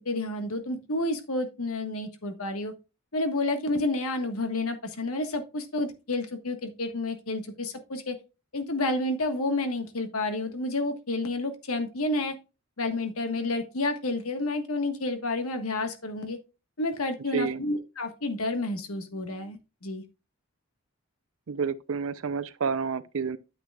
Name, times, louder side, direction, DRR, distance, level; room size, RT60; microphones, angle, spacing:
voice 1, 0.0-2.7 3.1-8.2 8.5-12.4 12.8-16.4 16.8-20.0, left 2 dB, 85° left, 1.4 m, -30 dB
voice 2, 21.5-23.4, right 5 dB, 70° right, 0.5 m, -29 dB
9.3 x 8.0 x 2.3 m
head